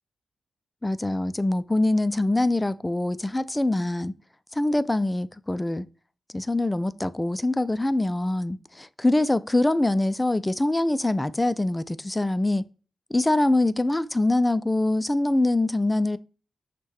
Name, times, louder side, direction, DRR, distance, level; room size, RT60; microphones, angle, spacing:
voice 1, 0.8-4.1 4.5-5.8 6.3-12.7 13.1-16.2, left 2 dB, 20° left, 0.3 m, -24 dB
6.2 x 2.2 x 3.0 m
cardioid pair, 55°, 0 cm